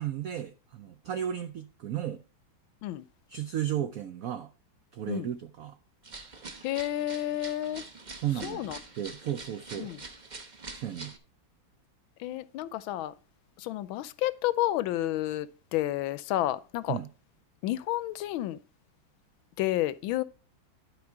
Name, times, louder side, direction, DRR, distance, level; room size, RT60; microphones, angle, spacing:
voice 1, 0.0-2.2 3.3-4.5 4.9-5.8 8.2-8.7 9.0-9.9 10.7-11.1 16.9-17.1, right 10 dB, 80° right, 0.7 m, -34 dB
sound 1, 6.0-11.2, right 3 dB, 30° right, 0.8 m, -45 dB
voice 2, 6.6-7.8 8.4-8.8 9.8-10.0 12.2-13.1 13.6-17.0 17.6-18.6 19.6-20.2, left 14 dB, 85° left, 1.4 m, -30 dB
11.5 x 4.9 x 4.7 m
omnidirectional pair, 2.2 m